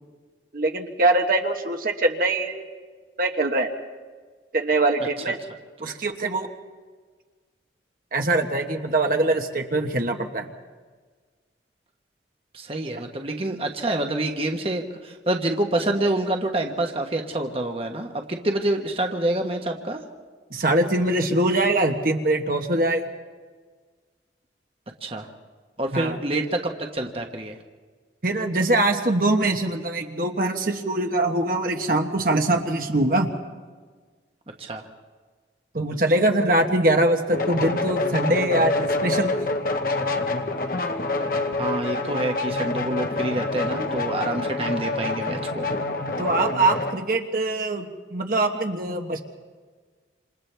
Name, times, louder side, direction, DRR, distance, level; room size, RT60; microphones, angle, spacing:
voice 1, 0.5-2.6 3.2-3.7 4.5-5.4 5.8-6.5 8.1-10.5 20.5-23.1 25.9-26.2 28.2-33.3 35.7-39.3 46.2-47.8 48.1-49.2, right 2 dB, 50° right, 3 dB, 1.3 m, -23 dB
voice 2, 12.5-20.0 25.0-25.3 25.8-27.6 34.6-34.8 41.6-45.7, right 1 dB, 30° right, 3 dB, 1.3 m, -27 dB
sound 1, 37.3-47.0, left 2 dB, 50° left, 1.3 m, -26 dB
28.0 x 27.5 x 3.4 m, 1.5 s
head